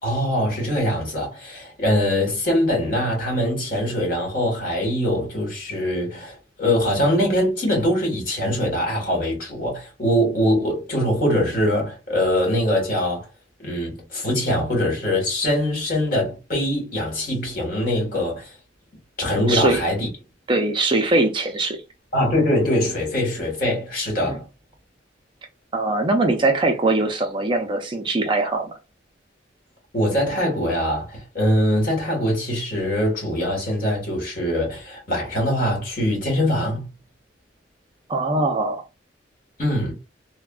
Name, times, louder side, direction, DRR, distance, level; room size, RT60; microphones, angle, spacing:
voice 1, 0.0-13.3 13.6-18.5 19.2-20.1 22.1-24.4 29.9-36.9 39.6-39.9, equal, 50° left, 1.6 m, -23 dB
voice 2, 19.5-19.8 20.5-21.8 24.3-24.4 25.7-28.7 38.1-38.8, right 2 dB, 25° right, 0.4 m, -21 dB
3.4 x 2.1 x 2.3 m
head